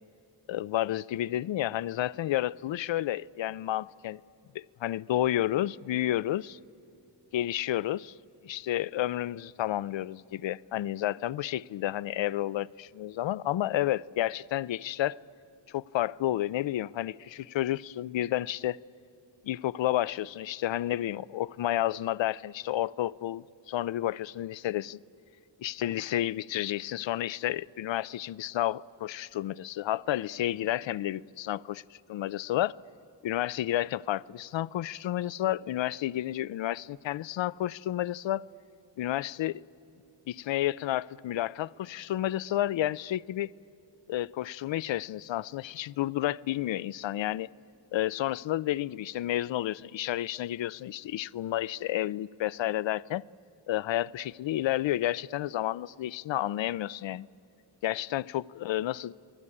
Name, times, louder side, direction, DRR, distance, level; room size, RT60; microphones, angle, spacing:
voice 1, 0.5-4.2 4.5-6.6 7.3-8.1 8.4-15.2 15.7-18.8 19.4-25.0 25.6-31.8 32.1-32.8 33.2-38.4 39.0-39.6 40.3-43.5 44.1-47.5 47.9-53.2 53.7-57.3 57.8-59.1, left 13 dB, 80° left, 0.5 m, -31 dB
29.0 x 20.5 x 9.8 m
wide cardioid pair, 160°, 44 cm